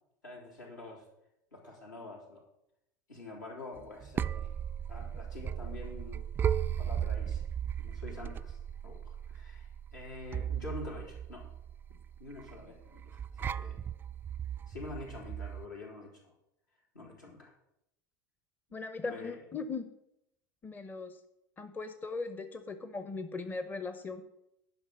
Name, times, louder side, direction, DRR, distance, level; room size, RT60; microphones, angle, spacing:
voice 1, 0.2-1.0 1.5-2.4 3.1-4.5 4.9-6.2 6.8-7.4 7.8-11.5 12.2-13.2 13.5-13.8 14.7-16.3 16.9-17.5 19.0-19.4, left 3 dB, 75° left, -2 dB, 3.3 m, -46 dB
sound 1, 3.8-15.7, right 9 dB, 20° right, 0.3 m, -36 dB
voice 2, 18.7-19.9 20.6-21.2 21.6-24.2, left 4 dB, 20° left, 10 dB, 0.8 m, -39 dB
10.5 x 5.5 x 6.3 m, 0.82 s
figure-of-eight pair, 75°, 10 cm